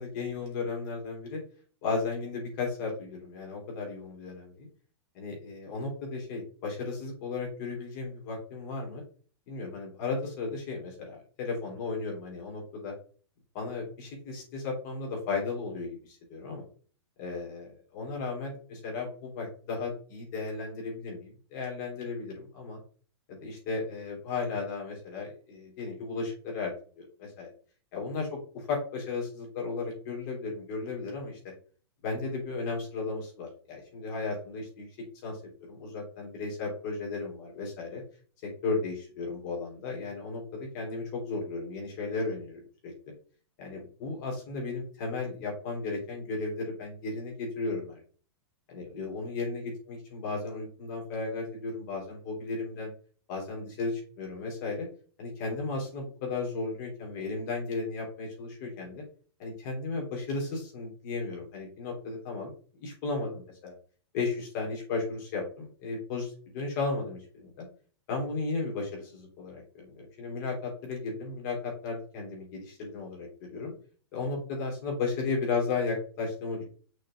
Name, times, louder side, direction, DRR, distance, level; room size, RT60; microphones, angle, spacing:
voice 1, 0.0-1.4 1.8-4.7 5.1-9.0 9.5-12.9 13.5-16.6 17.2-22.8 23.3-27.5 27.9-31.4 32.0-38.0 38.4-42.9 43.6-48.0 48.7-52.9 53.3-54.9 55.2-59.0 59.4-62.5 62.8-63.7 64.1-67.7 68.1-73.7 74.1-76.6, left 4 dB, 40° left, -1 dB, 3.3 m, -35 dB
6.3 x 4.4 x 3.7 m, 0.41 s
hypercardioid pair, 155°, 14 cm